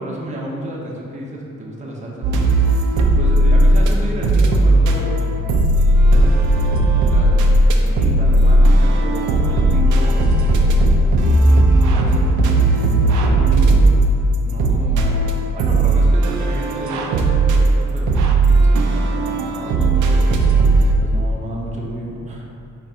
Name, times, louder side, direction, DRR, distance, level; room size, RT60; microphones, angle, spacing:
voice 1, 0.0-2.7 3.1-5.2 5.9-11.1 11.9-15.3 15.5-20.7 21.0-22.5, right 1 dB, 25° right, -3 dB, 0.7 m, -32 dB
sound 1, 2.2-3.9 4.2-20.9, right 1 dB, 75° right, 0.5 m, -15 dB
4.2 x 2.5 x 4.8 m, 2.4 s
cardioid pair, 90°, 30 cm